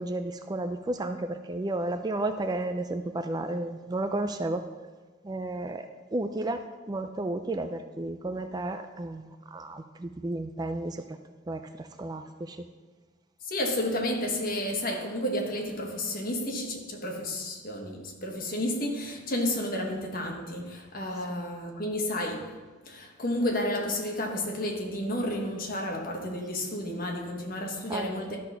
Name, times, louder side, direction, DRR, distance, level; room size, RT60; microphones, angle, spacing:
voice 1, 0.0-4.6 5.2-11.2 11.5-12.7 21.3-21.4 27.6-28.4, right 2 dB, 20° right, 0.4 m, -33 dB
voice 2, 13.4-22.6 22.8-28.4, left 1 dB, 45° left, 1.3 m, -31 dB
12.5 x 4.2 x 5.6 m
head